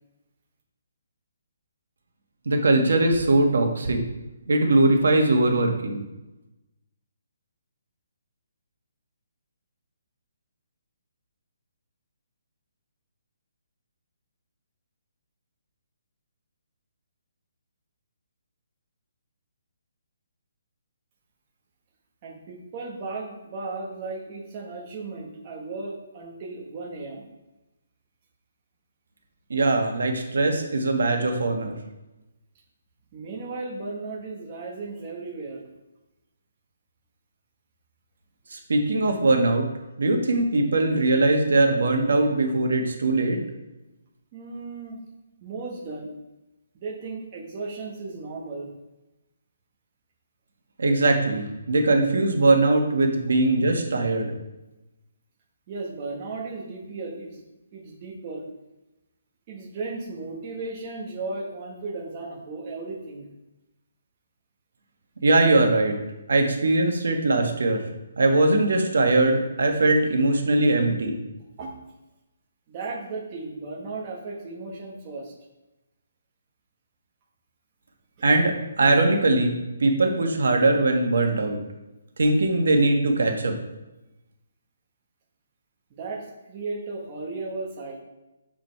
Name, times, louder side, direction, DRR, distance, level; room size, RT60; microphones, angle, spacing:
voice 1, 2.4-4.0 4.5-6.0 29.5-31.7 38.5-39.7 40.0-43.4 50.8-54.3 65.2-65.9 66.3-67.9 68.2-71.1 78.2-81.6 82.2-83.6, right 2 dB, 75° right, 3 dB, 1.5 m, -21 dB
voice 2, 22.2-27.2 33.1-35.7 44.3-45.0 45.4-46.1 46.7-48.7 55.7-57.4 57.7-58.5 59.5-63.2 71.6-71.7 72.7-75.3 78.2-78.3 85.9-88.0, right 3 dB, 20° right, -3 dB, 1.1 m, -35 dB
7.1 x 5.1 x 4.5 m, 1.0 s
hypercardioid pair, 175°, 0 cm